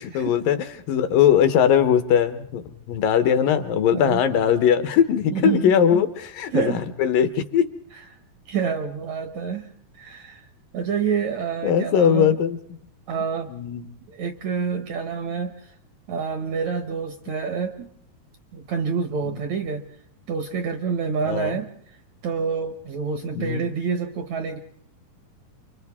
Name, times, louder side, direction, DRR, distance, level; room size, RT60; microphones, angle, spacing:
voice 1, 0.1-7.7 11.6-12.6 13.5-13.8 21.3-21.6 23.4-23.6, left 8 dB, 70° left, 10 dB, 2.5 m, -20 dB
voice 2, 5.3-6.0 6.5-6.8 8.5-9.7 9.9-10.5 10.7-12.4 13.1-13.5 14.1-15.7 16.1-17.9 18.5-19.8 20.3-21.7 22.2-24.6, right 6 dB, 70° right, 7 dB, 1.8 m, -27 dB
29.5 x 24.5 x 3.6 m, 0.66 s
omnidirectional pair, 4.3 m